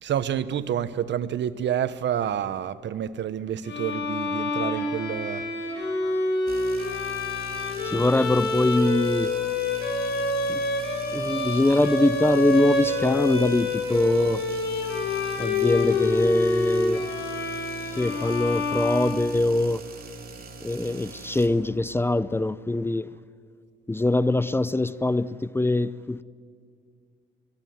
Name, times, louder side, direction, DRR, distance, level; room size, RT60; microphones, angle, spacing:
voice 1, 0.0-5.4, right 9 dB, 65° right, 1.0 m, -28 dB
Bowed string instrument, 3.6-19.6, left 2 dB, 60° left, 7.8 m, -27 dB
sound 1, 6.5-21.5, right 2 dB, 50° right, 3.5 m, -41 dB
voice 2, 7.8-9.3 10.5-10.6 11.1-14.4 15.4-17.1 18.0-19.8 20.6-23.1 23.9-26.2, left 2 dB, 10° left, 0.6 m, -23 dB
23.0 x 22.0 x 9.4 m
cardioid pair, 90°, 20 cm